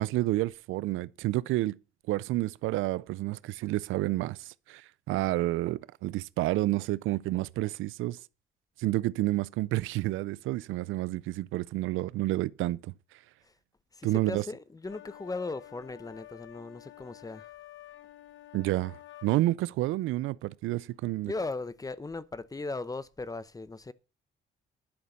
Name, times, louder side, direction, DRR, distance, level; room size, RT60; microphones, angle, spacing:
voice 1, 0.0-1.8 2.1-8.2 8.8-12.9 14.0-14.4 18.5-21.3, right 17 dB, 90° right, 0.5 m, -30 dB
voice 2, 13.9-17.5 21.2-23.9, left 3 dB, 20° left, 0.8 m, -37 dB
sound 1, 14.8-19.3, left 14 dB, 75° left, 1.3 m, -50 dB
11.5 x 6.8 x 7.1 m
cardioid pair, 90°, 20 cm